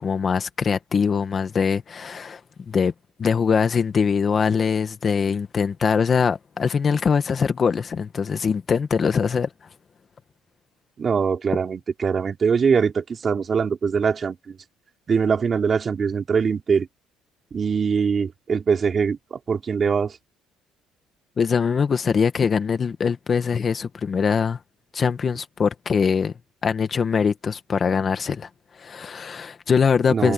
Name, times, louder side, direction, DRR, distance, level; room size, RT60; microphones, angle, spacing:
voice 1, 0.0-2.4 2.7-2.9 3.2-9.5 21.4-24.6 24.9-26.3 26.6-28.5 28.8-30.3, left 6 dB, 30° left, 1.8 m, -22 dB
voice 2, 11.0-14.6 15.1-16.9 17.5-20.2 30.1-30.3, right 6 dB, 30° right, 3.0 m, -22 dB
cardioid pair, 130°, 0 cm